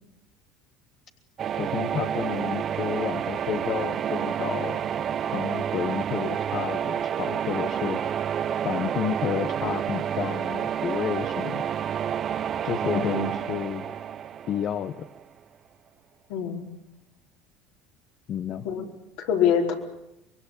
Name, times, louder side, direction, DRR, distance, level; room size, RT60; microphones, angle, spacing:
sound 1, 1.4-15.2, right 9 dB, 45° right, 0.9 m, -29 dB
voice 1, 1.6-4.8 5.3-8.0 8.6-11.6 12.6-13.8 14.5-15.0 18.3-18.7, left 9 dB, 50° left, 9 dB, 1.2 m, -31 dB
voice 2, 12.8-13.3 16.3-16.7 18.6-18.9 19.2-19.7, left 7 dB, 75° left, 1 dB, 4.7 m, -25 dB
24.5 x 22.5 x 8.7 m, 0.88 s
hypercardioid pair, 85°, 0 cm